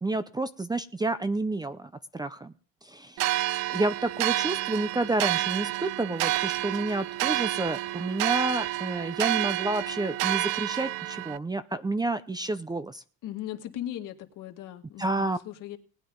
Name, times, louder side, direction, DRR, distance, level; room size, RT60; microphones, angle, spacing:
voice 1, 0.0-2.5 2.8-3.3 3.7-13.0 15.0-15.4, right 2 dB, 10° right, 0.6 m, -30 dB
sound 1, 3.2-11.4, right 16 dB, 65° right, 0.6 m, -29 dB
voice 2, 13.2-15.8, left 12 dB, 65° left, 2.0 m, -38 dB
19.5 x 9.3 x 3.8 m
cardioid pair, 110°, 34 cm